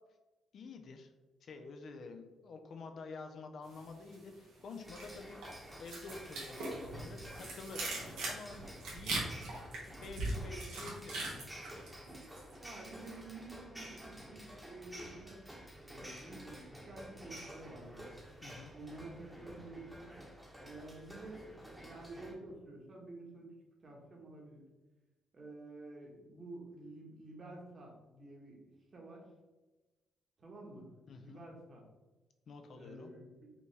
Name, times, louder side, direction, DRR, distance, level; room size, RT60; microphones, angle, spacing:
voice 1, 0.5-1.1 1.4-8.6 8.9-9.1 9.9-11.4 18.4-18.7 31.1-31.5 32.5-33.1, left 3 dB, 60° left, 6 dB, 0.5 m, -49 dB
sound 1, 3.7-4.4 4.7-12.6 12.9-13.2, right 2 dB, 90° right, 1.3 m, -41 dB
sound 2, 4.8-22.4, equal, 5° right, 1.0 m, -51 dB
voice 2, 12.6-15.4 15.8-18.1 18.7-20.2 20.6-23.5 23.8-24.6 25.3-28.6 28.9-29.3 30.4-30.9 31.2-31.9 32.7-33.5, right 2 dB, 40° right, -1 dB, 1.2 m, -50 dB
5.1 x 2.3 x 3.2 m, 1.1 s
cardioid pair, 90°, 0 cm